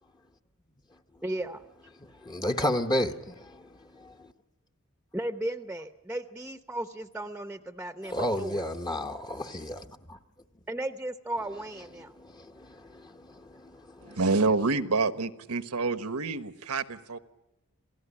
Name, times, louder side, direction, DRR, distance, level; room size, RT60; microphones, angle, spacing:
voice 1, 1.2-1.6 5.1-8.7 10.7-12.2, right 1 dB, 5° right, 0.8 m, -35 dB
voice 2, 2.2-4.3 8.1-10.2 12.2-14.2, left 1 dB, 20° left, 0.9 m, -32 dB
voice 3, 14.0-17.2, right 3 dB, 80° right, 1.3 m, -27 dB
27.0 x 17.5 x 9.9 m
head